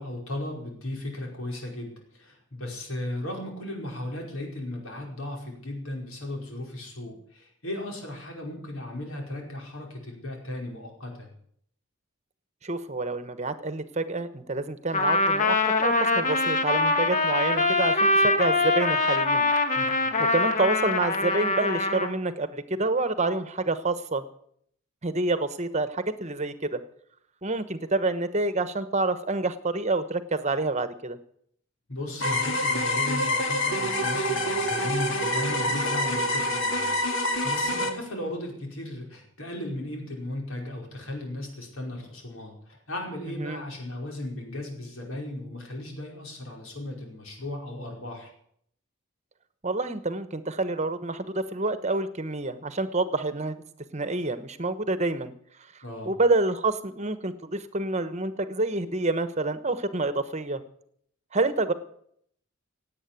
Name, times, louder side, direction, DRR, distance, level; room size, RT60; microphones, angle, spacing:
voice 1, 0.0-11.3 19.7-19.9 31.9-48.3 55.8-56.1, left 1 dB, 80° left, 0 dB, 5.1 m, -36 dB
voice 2, 12.6-19.4 20.2-24.2 25.0-26.8 27.4-31.2 43.4-43.6 49.6-53.6 53.9-55.3 56.0-60.6 61.3-61.7, right 2 dB, 35° right, 12 dB, 1.1 m, -28 dB
Trumpet, 14.9-22.1, left 3 dB, 40° left, 1.3 m, -23 dB
sound 1, 32.2-37.9, left 1 dB, 60° left, 2.3 m, -26 dB
17.5 x 8.6 x 8.6 m, 0.67 s
head